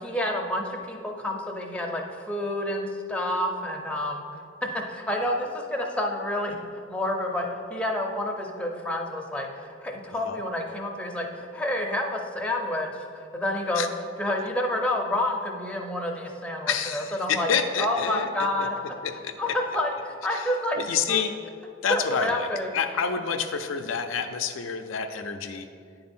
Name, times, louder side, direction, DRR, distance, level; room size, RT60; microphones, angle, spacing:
voice 1, 0.0-4.2 4.6-6.6 6.9-13.9 14.2-17.5 17.8-18.8 19.4-21.2 21.9-22.7, left 1 dB, 5° left, 0 dB, 0.6 m, -29 dB
voice 2, 16.7-18.3 19.0-19.4 20.3-20.5 20.8-21.3 21.8-22.5 22.7-25.7, left 6 dB, 70° left, 6 dB, 0.4 m, -28 dB
9.3 x 3.9 x 4.3 m, 2.4 s
head